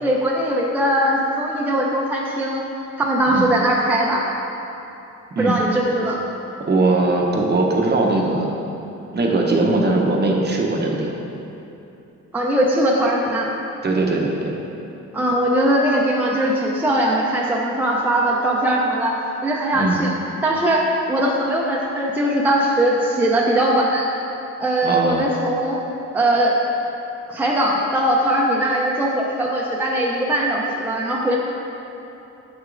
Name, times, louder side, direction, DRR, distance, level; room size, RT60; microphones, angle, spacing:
voice 1, 0.0-2.6 3.0-4.2 5.4-6.2 12.3-13.5 15.1-19.2 19.4-20.1 20.4-24.1 24.6-25.8 26.1-26.5 27.3-31.4, right 1 dB, 5° right, -3 dB, 0.5 m, -20 dB
voice 2, 6.7-8.5 9.1-11.1 13.8-14.5 19.7-20.0 24.8-25.2, right 2 dB, 35° right, 0 dB, 0.8 m, -20 dB
6.5 x 6.2 x 2.5 m, 2.9 s
cardioid pair, 90°, 30 cm